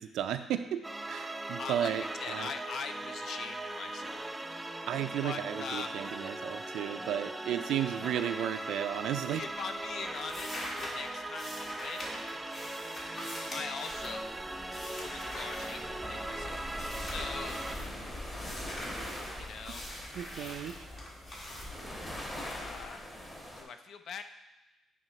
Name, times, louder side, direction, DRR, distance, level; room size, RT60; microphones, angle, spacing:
voice 1, 0.0-2.5 4.9-9.4 20.2-20.8, right 10 dB, 80° right, 10 dB, 0.3 m, -34 dB
sound 1, 0.8-17.8, right 2 dB, 15° right, 0.4 m, -40 dB
voice 2, 1.6-1.9 2.2-4.2 5.2-5.9 9.4-12.1 13.5-14.3 14.9-16.6 17.0-17.6 19.4-19.9 22.4-23.1 23.6-24.2, left 6 dB, 65° left, 9 dB, 0.4 m, -42 dB
sound 2, 9.1-9.4 9.6-16.4 16.7-17.9 18.4-23.3, left 1 dB, 45° left, 1.7 m, -44 dB
sound 3, 13.9-23.6, left 1 dB, 20° left, 1.2 m, -43 dB
9.0 x 3.5 x 3.1 m, 0.97 s
cardioid pair, 90°, 0 cm